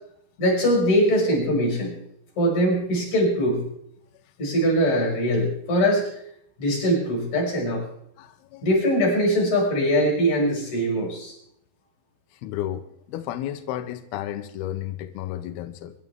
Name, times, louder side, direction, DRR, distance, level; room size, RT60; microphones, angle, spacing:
voice 1, 0.4-1.9 2.4-3.6 4.4-6.1 6.6-7.8 8.6-11.3, equal, 40° left, -1 dB, 7.0 m, -22 dB
voice 2, 8.2-8.6 12.4-15.9, left 12 dB, 90° left, 8 dB, 2.2 m, -32 dB
24.0 x 12.0 x 3.7 m, 0.72 s
omnidirectional pair, 5.4 m